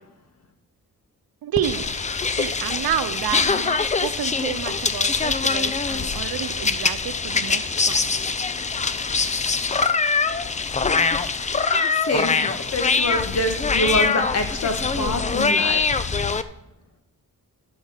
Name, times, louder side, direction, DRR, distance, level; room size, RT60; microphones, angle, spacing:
voice 1, 1.4-1.9 2.3-8.1, right 10 dB, 90° right, 12 dB, 0.8 m, -30 dB
sound 1, 1.6-16.4, left 4 dB, 20° left, 0.4 m, -23 dB
voice 2, 11.7-15.8, left 1 dB, 45° left, 5 dB, 1.6 m, -26 dB
12.5 x 5.5 x 6.6 m, 0.85 s
wide cardioid pair, 165°, 35 cm